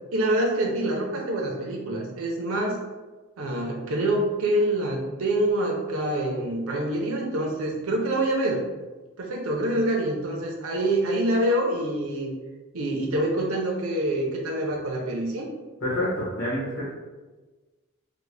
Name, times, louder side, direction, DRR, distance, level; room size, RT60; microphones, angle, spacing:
voice 1, 0.1-2.8 3.4-8.7 9.2-12.4 12.7-15.5, right 1 dB, 80° right, -1 dB, 0.5 m, -26 dB
voice 2, 15.8-16.9, left 1 dB, 55° left, -9 dB, 0.9 m, -27 dB
3.7 x 2.1 x 3.2 m, 1.3 s
head